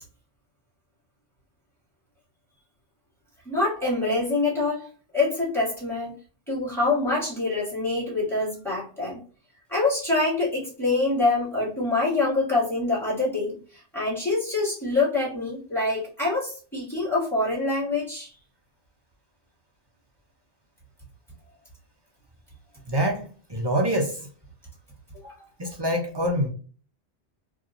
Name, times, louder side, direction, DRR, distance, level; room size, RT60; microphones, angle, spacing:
voice 1, 3.4-4.9 5.1-6.1 6.5-9.2 9.7-13.6 13.9-18.3 25.2-25.3, left 3 dB, ahead, 1.5 m, -25 dB
voice 2, 22.9-23.2 23.5-24.2 25.6-26.5, equal, 45° right, 0.3 m, -25 dB
2.8 x 2.8 x 2.5 m
omnidirectional pair, 1.2 m